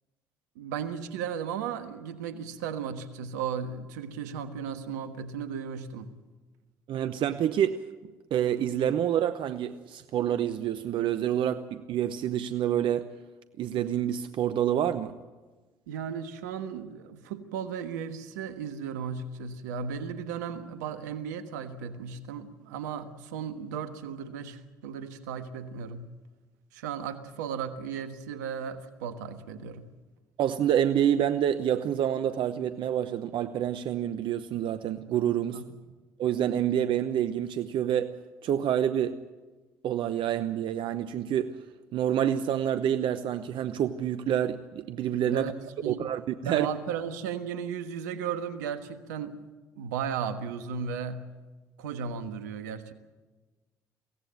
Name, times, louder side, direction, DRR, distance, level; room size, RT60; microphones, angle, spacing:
voice 1, 0.5-6.1 15.9-26.1 26.7-29.9 35.5-35.6 45.3-46.0 46.4-49.5 49.8-51.3 51.8-52.9, right 7 dB, 90° right, 1.4 m, -35 dB
voice 2, 6.9-7.8 8.3-13.1 13.6-15.2 30.4-35.6 36.2-38.1 38.4-39.2 39.8-41.6 41.9-45.5 45.9-46.7, right 10 dB, 65° right, 0.9 m, -27 dB
23.5 x 17.0 x 8.9 m
hypercardioid pair, 55°, 9 cm